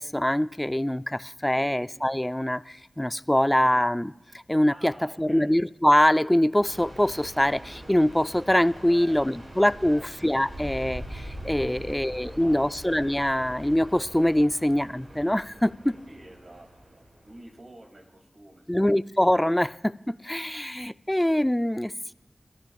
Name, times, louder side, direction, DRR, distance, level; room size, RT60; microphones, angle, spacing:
voice 1, 0.0-4.1 4.5-15.8 18.7-22.1, left 1 dB, 10° left, 16 dB, 0.3 m, -24 dB
voice 2, 4.7-5.5 8.9-9.4 9.8-10.1 11.6-12.6 15.8-18.7, right 1 dB, 60° right, 1 dB, 2.3 m, -48 dB
sound 1, 6.6-17.5, right 1 dB, 85° right, 4.8 m, -43 dB
25.0 x 13.0 x 2.3 m, 1.0 s
cardioid pair, 45°, 0 cm